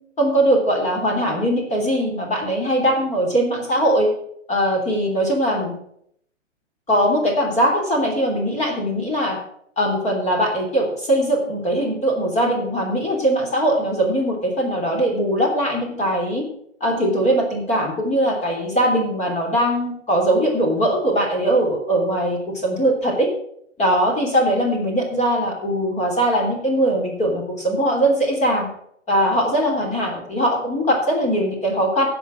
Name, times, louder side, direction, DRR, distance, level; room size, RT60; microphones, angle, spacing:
voice 1, 0.2-4.1 4.5-5.7 6.9-9.4 9.8-16.4 16.8-23.3 23.8-28.7 29.1-32.1, right 1 dB, 20° left, 0 dB, 3.3 m, -20 dB
15.5 x 5.3 x 7.4 m, 0.69 s
hypercardioid pair, 125°, 38 cm